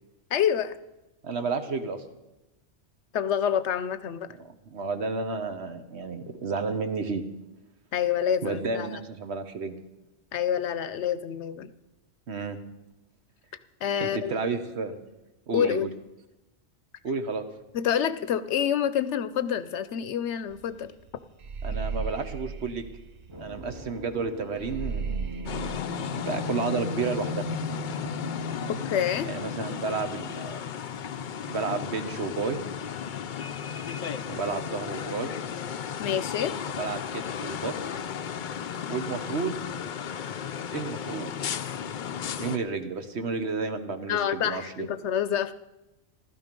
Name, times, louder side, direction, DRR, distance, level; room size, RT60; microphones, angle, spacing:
voice 1, 0.3-0.8 3.1-4.3 7.9-9.0 10.3-11.7 13.8-14.3 15.5-15.9 17.7-20.9 21.7-21.8 28.9-29.3 36.0-36.5 44.1-45.5, left 9 dB, 75° left, 13 dB, 1.0 m, -27 dB
voice 2, 1.2-2.0 4.4-7.2 8.4-9.8 12.3-12.6 14.0-14.9 15.5-15.9 17.0-17.4 21.6-22.9 23.4-25.1 26.1-27.5 29.3-30.6 31.5-32.6 34.3-35.3 36.7-38.0 38.9-39.6 40.7-41.3 42.4-44.9, right 4 dB, 70° right, 8 dB, 1.3 m, -31 dB
sound 1, 20.5-20.7 21.0-23.8 24.1-24.2 24.6-25.8, right 5 dB, 45° right, 0.6 m, -34 dB
Thar'she blows, 23.3-31.0, left 1 dB, 25° right, 1.3 m, -39 dB
sound 2, 25.5-42.6, left 8 dB, 55° left, 0.6 m, -34 dB
15.5 x 12.5 x 5.3 m, 0.98 s
omnidirectional pair, 1.2 m